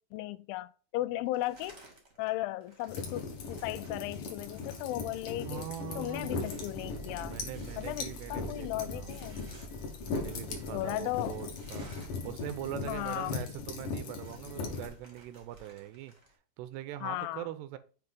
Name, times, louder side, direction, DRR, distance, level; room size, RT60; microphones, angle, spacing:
voice 1, 0.1-1.8 2.2-5.6 6.0-7.4 7.8-9.4 10.7-11.4 12.9-13.3 17.0-17.5, left 16 dB, 85° left, 2.1 m, -36 dB
sound 1, 1.3-2.3 2.6-12.3 12.5-12.6 12.9-13.6 13.9-16.4, right 2 dB, 55° right, 0.7 m, -57 dB
sound 2, 2.9-14.9, left 4 dB, 65° left, 2.4 m, -39 dB
sound 3, 4.9-14.9, right 2 dB, 35° left, 1.0 m, -51 dB
voice 2, 5.4-6.5 7.2-9.1 10.1-16.1 16.6-17.8, right 12 dB, 85° right, 2.7 m, -42 dB
7.8 x 2.8 x 5.3 m
omnidirectional pair, 4.7 m